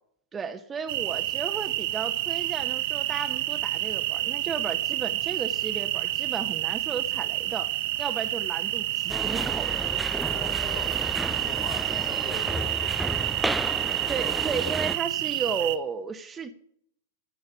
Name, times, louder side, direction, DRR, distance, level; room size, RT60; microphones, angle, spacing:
voice 1, 0.3-7.7 8.0-9.7 14.1-16.5, right 6 dB, 20° right, 7 dB, 1.0 m, -34 dB
sound 1, 0.9-15.8, right 16 dB, 55° right, 1.0 m, -29 dB
sound 2, 9.1-15.0, right 1 dB, 5° right, 0.4 m, -32 dB
voice 2, 10.3-14.5, left 6 dB, 40° left, 5 dB, 4.0 m, -44 dB
15.5 x 6.4 x 7.1 m, 0.67 s
hypercardioid pair, 115°, 0 cm